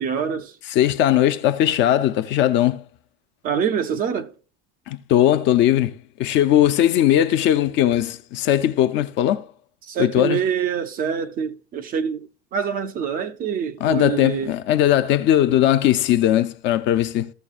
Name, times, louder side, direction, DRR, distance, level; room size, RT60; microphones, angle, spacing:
voice 1, 0.0-0.5 3.4-4.3 9.9-12.3 12.5-14.5, right 7 dB, 30° right, 0.4 m, -25 dB
voice 2, 0.7-2.8 4.9-9.5 10.0-10.4 13.8-17.3, left 12 dB, 35° left, 0.4 m, -19 dB
15.0 x 6.8 x 2.4 m
cardioid pair, 175°, 32 cm